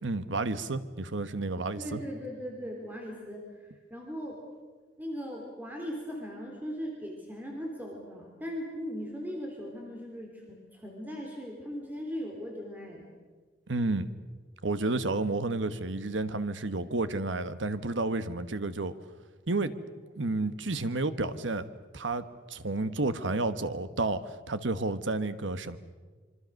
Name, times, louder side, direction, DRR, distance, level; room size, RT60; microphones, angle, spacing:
voice 1, 0.0-2.0 13.7-14.1 14.6-18.9 19.5-19.7 20.2-21.7 21.9-25.8, right 2 dB, 80° right, 12 dB, 1.3 m, -31 dB
voice 2, 1.8-4.4 5.0-13.1, equal, 10° right, 0 dB, 3.5 m, -39 dB
25.5 x 25.0 x 6.5 m, 1.4 s
head